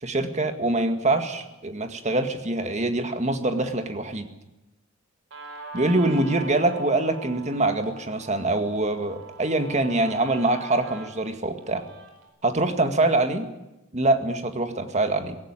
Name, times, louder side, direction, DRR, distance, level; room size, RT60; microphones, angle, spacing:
voice 1, 0.0-4.3 5.7-11.8 12.4-13.5 13.9-15.4, right 2 dB, 35° right, 7 dB, 1.9 m, -24 dB
Guitar, 5.3-12.3, right 2 dB, 75° right, 5.0 m, -42 dB
18.0 x 16.5 x 9.8 m, 0.96 s
head